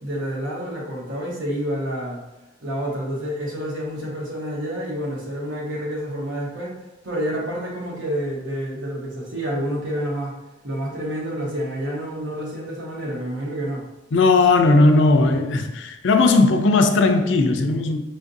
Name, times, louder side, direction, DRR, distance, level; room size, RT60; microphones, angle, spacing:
voice 1, 0.0-2.2 2.6-6.7 7.0-10.3 10.6-13.8, equal, 80° right, 1.1 m, -28 dB
voice 2, 14.1-18.0, left 3 dB, 70° left, 0.4 m, -17 dB
5.2 x 2.5 x 2.6 m
head